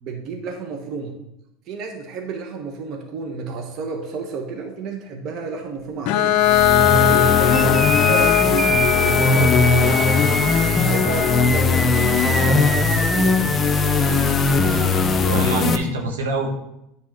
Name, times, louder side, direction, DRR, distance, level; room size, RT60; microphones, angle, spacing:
voice 1, 0.0-1.2 1.7-6.4 6.9-9.9 10.7-13.7, right 4 dB, 50° right, 3 dB, 1.1 m, -31 dB
Bowed string instrument, 6.1-11.7, left 11 dB, 60° left, 0.3 m, -20 dB
sound 1, 6.4-15.8, left 4 dB, 25° left, 0.7 m, -19 dB
sound 2, 7.5-15.4, right 1 dB, 10° right, 0.5 m, -27 dB
voice 2, 7.5-8.0 15.2-16.5, right 2 dB, 85° right, 1 dB, 1.4 m, -26 dB
9.1 x 3.7 x 6.0 m, 0.83 s
hypercardioid pair, 85°, 0 cm